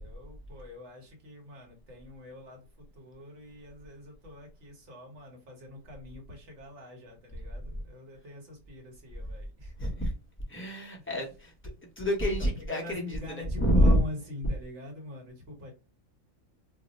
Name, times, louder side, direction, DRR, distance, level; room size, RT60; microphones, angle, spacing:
voice 1, 0.0-9.7 11.0-11.1 12.6-15.7, left 2 dB, 55° right, 1.3 m, -44 dB
voice 2, 9.8-10.1 10.5-14.0, equal, 15° left, 0.4 m, -27 dB
2.7 x 2.0 x 3.9 m
omnidirectional pair, 1.4 m